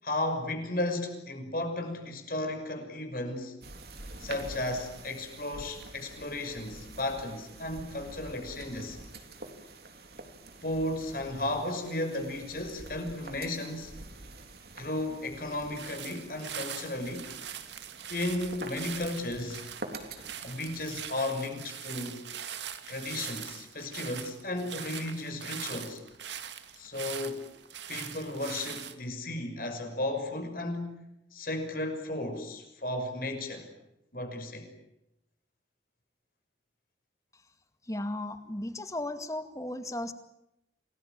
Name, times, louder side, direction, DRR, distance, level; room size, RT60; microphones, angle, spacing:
voice 1, 0.0-3.5 4.2-9.0 10.6-13.9 14.8-17.3 18.1-19.7 20.4-22.2 22.9-26.0 26.7-27.5 27.9-31.0 31.3-33.7 34.1-34.7, left 1 dB, 50° left, 5 dB, 6.1 m, -34 dB
sound 1, 3.6-21.1, right 2 dB, 60° right, 3.6 m, -47 dB
sound 2, 15.5-28.9, right 9 dB, 80° right, 2.3 m, -42 dB
voice 2, 37.8-40.1, left 1 dB, 15° left, 9 dB, 2.1 m, -35 dB
28.0 x 20.0 x 9.2 m, 0.86 s
head